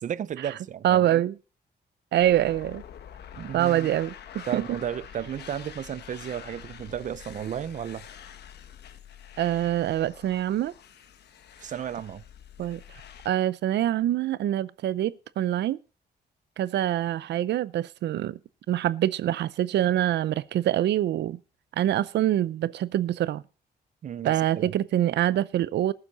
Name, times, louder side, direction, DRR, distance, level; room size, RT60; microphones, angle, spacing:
voice 1, 0.0-1.3 3.3-3.9 4.5-8.1 11.6-12.2 24.0-24.7, right 9 dB, 45° right, 0.5 m, -34 dB
voice 2, 0.8-1.3 2.1-2.8 3.5-4.6 9.4-10.7 12.6-12.8 13.2-15.8 16.6-18.4 18.7-21.4 21.8-23.4 24.2-25.9, right 12 dB, 90° right, 0.6 m, -25 dB
sound 1, 2.2-13.3, left 9 dB, 75° left, 1.1 m, -46 dB
19.0 x 7.4 x 4.1 m
wide cardioid pair, 150°, 17 cm